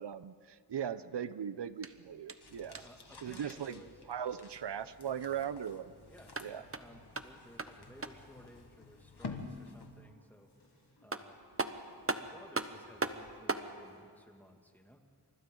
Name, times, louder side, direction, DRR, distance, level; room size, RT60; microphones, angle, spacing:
voice 1, 0.0-2.8 3.2-3.8 4.1-5.9 6.4-6.6, right 8 dB, 80° right, 15 dB, 0.7 m, -39 dB
sound 1, 1.7-3.1 6.1-8.4 10.6-10.7 11.1-13.7, right 3 dB, 35° right, 1.0 m, -39 dB
sound 2, 2.4-10.1, left 4 dB, 70° left, 1.7 m, -50 dB
voice 2, 2.8-4.0 5.3-5.5 6.0-10.5 11.0-15.0, equal, 5° left, 3 dB, 2.2 m, -58 dB
sound 3, 4.4-14.0, left 1 dB, 85° left, 7.1 m, -68 dB
30.0 x 27.0 x 3.9 m, 2.1 s
wide cardioid pair, 60°, 41 cm